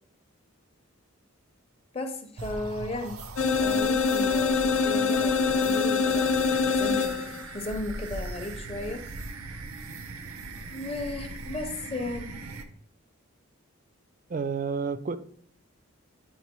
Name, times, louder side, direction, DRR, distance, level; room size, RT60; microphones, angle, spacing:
voice 1, 1.9-3.2 3.6-9.0 10.7-12.4, left 2 dB, 25° left, 5 dB, 0.6 m, -35 dB
sound 1, 2.4-12.6, right 3 dB, 80° right, 0.6 m, -40 dB
sound 2, 3.4-7.5, left 5 dB, 75° left, 0.6 m, -24 dB
voice 2, 14.3-15.2, right 5 dB, 40° right, 13 dB, 0.3 m, -30 dB
8.5 x 3.8 x 2.9 m, 0.63 s
head